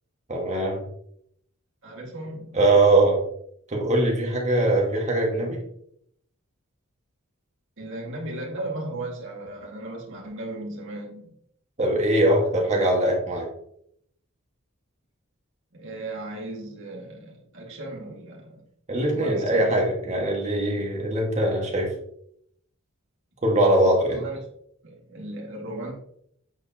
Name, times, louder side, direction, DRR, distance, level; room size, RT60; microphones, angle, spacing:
voice 1, 0.3-0.8 2.5-3.2 3.7-5.6 11.8-13.5 18.9-21.9 23.4-24.2, right 1 dB, 35° right, -1 dB, 1.6 m, -21 dB
voice 2, 1.8-2.6 4.6-4.7 7.8-11.3 12.5-13.0 15.7-18.7 19.1-19.7 24.1-24.4 24.8-25.9, right 2 dB, 60° right, -1 dB, 2.0 m, -36 dB
7.9 x 4.5 x 2.8 m, 0.70 s
head